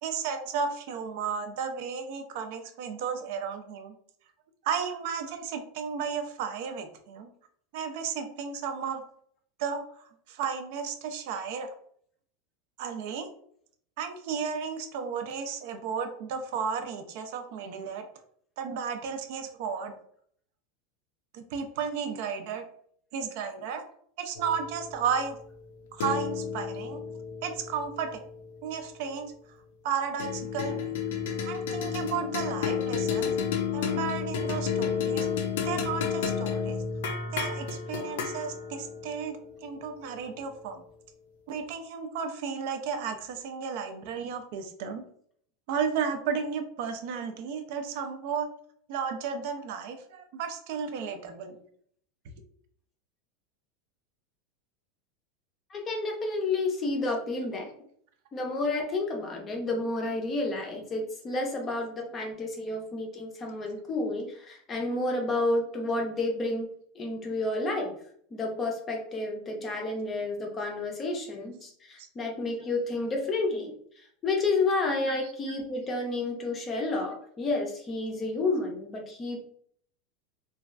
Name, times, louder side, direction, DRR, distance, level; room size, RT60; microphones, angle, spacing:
voice 1, 0.0-3.9 4.6-7.3 7.7-9.0 9.6-11.7 12.8-13.3 14.0-18.0 18.6-19.9 21.3-22.6 23.1-23.8 24.2-25.4 25.9-27.0 27.4-28.2 28.6-29.3 29.8-31.0 31.5-33.3 33.7-35.3 35.6-36.8 37.3-40.8 41.5-45.0 45.7-48.5 48.9-51.6 72.0-72.1 75.1-75.3, right 6 dB, 55° right, 6 dB, 0.4 m, -33 dB
sound 1, 24.4-29.0 30.2-40.7, left 6 dB, 80° left, 0.4 m, -32 dB
voice 2, 55.7-57.7 58.3-66.7 67.0-67.9 68.3-79.4, left 2 dB, 20° left, 2 dB, 0.5 m, -30 dB
3.0 x 2.3 x 2.4 m, 0.62 s
supercardioid pair, 165°, 0 cm